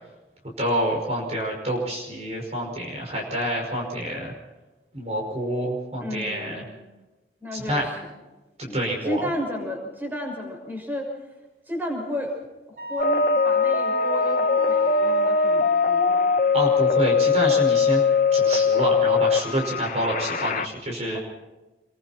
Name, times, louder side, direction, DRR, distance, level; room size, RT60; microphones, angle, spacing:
voice 1, 0.6-4.3 4.9-6.6 7.5-7.9 8.7-9.2 16.5-18.0 18.3-21.2, equal, 35° right, 0 dB, 5.4 m, -27 dB
voice 2, 6.0-6.8 7.4-8.2 8.7-8.8 9.0-11.1 11.7-12.3 12.7-16.3 21.1-21.2, equal, 10° right, 1 dB, 6.0 m, -32 dB
Wind instrument woodwind instrument, 12.8-16.2, right 1 dB, 55° right, 6.4 m, -36 dB
sound 1, 13.0-20.7, left 5 dB, 45° left, 1.0 m, -21 dB
28.5 x 22.5 x 4.4 m, 1.1 s
head